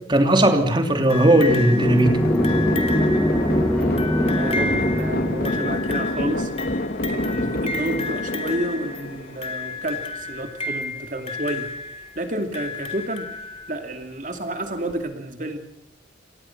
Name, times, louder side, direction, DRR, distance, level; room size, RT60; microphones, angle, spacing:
voice 1, 0.1-2.2, right 1 dB, 25° right, 5 dB, 2.9 m, -17 dB
sound 1, 1.0-6.0, equal, 5° left, 0.9 m, -23 dB
sound 2, 1.1-13.9 14.9-15.0, left 3 dB, 30° left, 2.9 m, -33 dB
sound 3, 1.5-9.8, left 1 dB, 50° left, 1.6 m, -27 dB
voice 2, 3.7-6.8 7.1-11.7 12.2-15.6, right 1 dB, 40° right, 5 dB, 2.6 m, -30 dB
29.0 x 25.0 x 6.0 m, 0.79 s
head